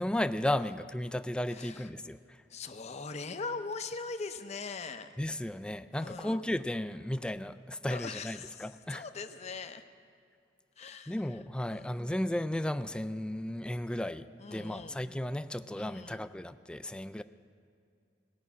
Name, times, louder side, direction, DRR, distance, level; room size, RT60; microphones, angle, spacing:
voice 1, 0.0-2.4 5.2-9.0 11.1-17.2, left 1 dB, 5° left, 12 dB, 0.3 m, -34 dB
voice 2, 1.5-1.9 2.5-5.1 5.9-6.4 7.9-9.8 10.8-11.4 11.7-11.9 14.4-15.0 15.7-16.3, left 4 dB, 40° left, 8 dB, 0.6 m, -41 dB
18.0 x 6.1 x 9.3 m, 2.4 s
head